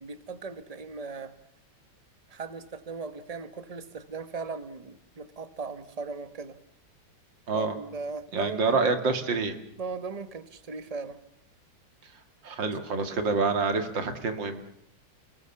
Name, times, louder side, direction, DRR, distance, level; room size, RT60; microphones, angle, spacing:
voice 1, 0.0-1.4 2.3-6.6 7.5-8.8 9.8-11.2 12.6-12.7 13.0-13.2, right 4 dB, 25° right, 12 dB, 1.0 m, -38 dB
voice 2, 8.3-9.6 12.4-14.6, right 4 dB, 80° right, 8 dB, 2.7 m, -27 dB
28.0 x 20.0 x 7.1 m, 0.73 s
omnidirectional pair, 2.0 m